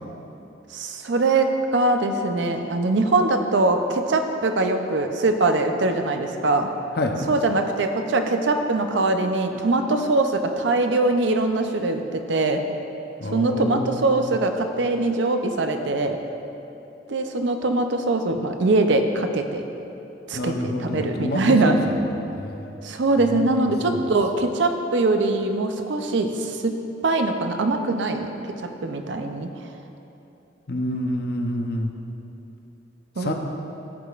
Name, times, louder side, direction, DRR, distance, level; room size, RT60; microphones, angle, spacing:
voice 1, 0.7-6.7 7.3-12.6 13.3-16.2 17.1-19.6 20.3-21.8 22.8-26.8 27.0-28.5 28.8-29.5 33.2-33.3, right 2 dB, 75° right, 6 dB, 0.5 m, -22 dB
voice 2, 13.2-14.3 20.3-22.0 22.3-22.7 23.2-24.0 30.7-31.9 33.2-33.3, left 1 dB, 60° left, 3 dB, 0.7 m, -28 dB
14.5 x 5.1 x 2.4 m, 3.0 s
head